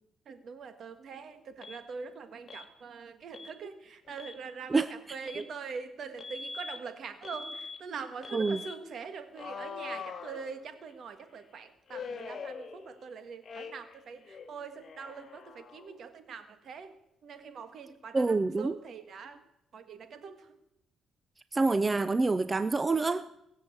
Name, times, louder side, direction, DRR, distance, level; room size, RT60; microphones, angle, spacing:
voice 1, 0.2-17.0 17.2-19.4 19.7-20.5, right 5 dB, 60° right, 9 dB, 1.7 m, -43 dB
Alarm, 1.6-1.8 2.5-2.7 3.3-3.5 4.1-4.4 5.3-5.5 6.2-6.8 7.2-7.8 8.2-8.8 9.4-10.9 11.9-13.1 13.4-14.0 14.3-16.0, left 5 dB, 50° left, 1.4 m, -43 dB
voice 2, 18.1-18.8 21.5-23.3, right 3 dB, 25° right, 14 dB, 0.5 m, -27 dB
19.0 x 7.6 x 8.1 m, 0.85 s
cardioid pair, 90°, 0 cm